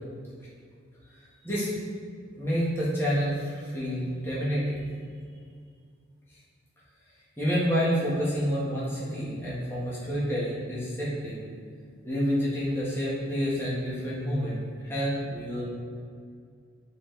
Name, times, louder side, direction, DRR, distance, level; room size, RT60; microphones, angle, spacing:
voice 1, 1.0-1.7 2.3-4.8 7.4-11.4 12.0-15.6, equal, 10° left, -9 dB, 1.5 m, -28 dB
7.3 x 4.0 x 3.3 m, 2.2 s
head